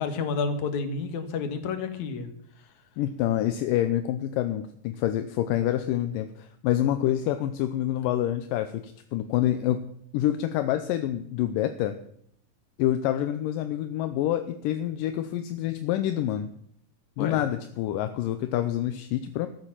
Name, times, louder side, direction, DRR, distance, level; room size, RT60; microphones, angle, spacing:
voice 1, 0.0-2.3 17.2-17.4, left 5 dB, 65° left, 7 dB, 2.9 m, -30 dB
voice 2, 3.0-9.8 10.1-12.0 12.8-16.5 17.2-19.5, left 12 dB, 80° left, 9 dB, 2.4 m, -27 dB
14.0 x 9.1 x 7.4 m, 0.69 s
omnidirectional pair, 3.9 m